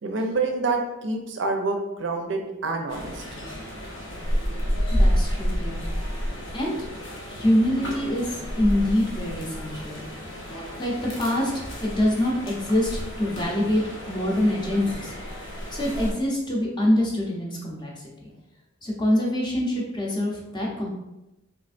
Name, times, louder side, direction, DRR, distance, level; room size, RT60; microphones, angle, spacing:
voice 1, 0.0-3.2, right 3 dB, 60° right, 3 dB, 0.5 m, -27 dB
sound 1, 2.9-16.1, equal, 60° left, 0.7 m, -30 dB
voice 2, 4.9-5.8 6.5-6.8 7.3-10.0 10.8-15.1 15.7-17.9 18.2-18.3 18.8-20.9, left 1 dB, 20° left, -3 dB, 0.6 m, -25 dB
3.3 x 3.1 x 2.5 m, 0.96 s
head